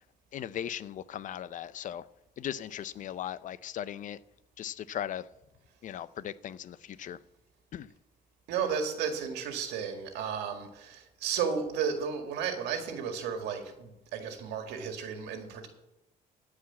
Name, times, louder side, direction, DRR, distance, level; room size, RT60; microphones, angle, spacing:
voice 1, 0.3-2.0 2.4-4.2 4.6-5.2 5.8-7.2 7.7-7.9, left 10 dB, 50° left, 0.5 m, -38 dB
voice 2, 8.5-15.7, right 7 dB, 90° right, 1.9 m, -33 dB
14.5 x 5.0 x 8.5 m
cardioid pair, 110°, 17 cm